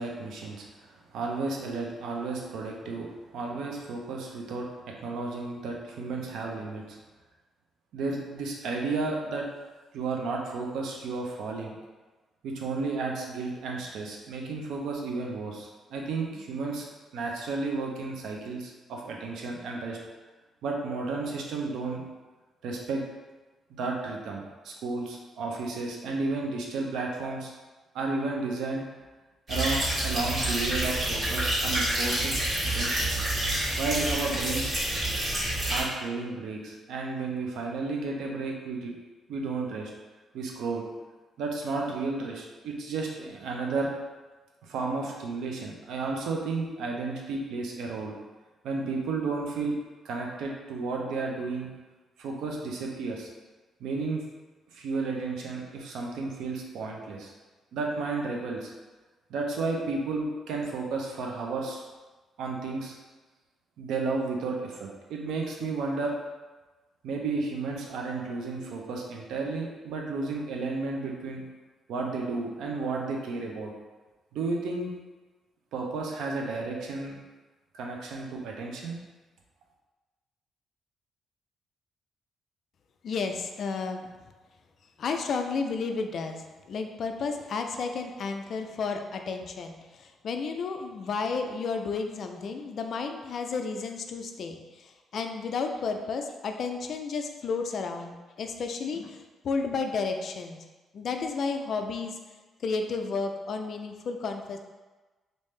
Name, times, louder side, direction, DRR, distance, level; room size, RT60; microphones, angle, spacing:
voice 1, 0.0-3.1 3.3-4.7 5.0-7.0 7.9-9.5 9.9-11.7 12.4-16.9 17.1-20.0 20.6-22.0 22.6-23.0 23.7-27.5 27.9-28.9 29.5-32.4 32.6-33.1 33.8-34.8 35.7-38.9 39.3-39.9 40.3-40.8 41.4-43.9 44.6-48.1 48.6-49.8 50.0-51.7 52.2-53.3 53.8-54.2 54.7-57.3 57.7-58.7 59.3-61.8 62.4-63.0 63.8-66.1 67.0-71.4 71.9-73.7 74.3-74.9 75.7-77.2 77.7-79.0, right 3 dB, 85° right, 0 dB, 0.6 m, -32 dB
sound 1, 29.5-35.8, right 1 dB, 40° right, 1.5 m, -28 dB
voice 2, 83.0-84.1 85.0-100.6 100.9-102.2 102.6-104.6, left 4 dB, 55° left, 5 dB, 0.3 m, -32 dB
3.3 x 2.6 x 3.2 m, 1.2 s
cardioid pair, 120°, 0 cm